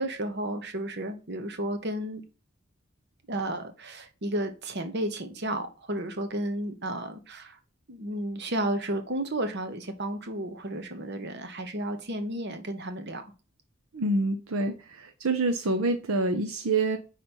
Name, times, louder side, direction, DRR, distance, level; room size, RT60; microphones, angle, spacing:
voice 1, 0.0-2.2 3.3-7.6 7.9-13.2, right 1 dB, 50° right, 1.0 m, -32 dB
voice 2, 13.9-17.0, right 2 dB, 75° right, 0.7 m, -27 dB
5.4 x 4.2 x 4.3 m
head